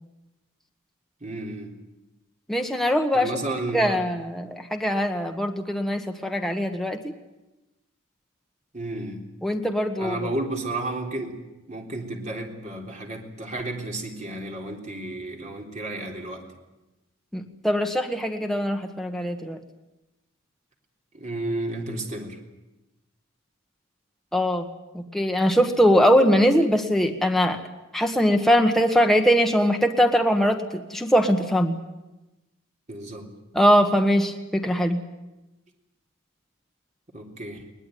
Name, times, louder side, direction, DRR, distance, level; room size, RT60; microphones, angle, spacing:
voice 1, 1.2-1.7 3.1-4.0 8.7-9.2 10.0-11.4 11.7-16.4 21.1-22.4 32.9-33.3 37.1-37.6, right 2 dB, 35° right, 1 dB, 3.7 m, -32 dB
voice 2, 2.5-3.3 3.7-7.1 9.4-10.2 17.3-19.6 24.3-24.7 24.9-27.6 27.9-31.7 33.5-35.0, equal, ahead, 3 dB, 1.3 m, -21 dB
21.5 x 20.0 x 9.2 m, 1.0 s
head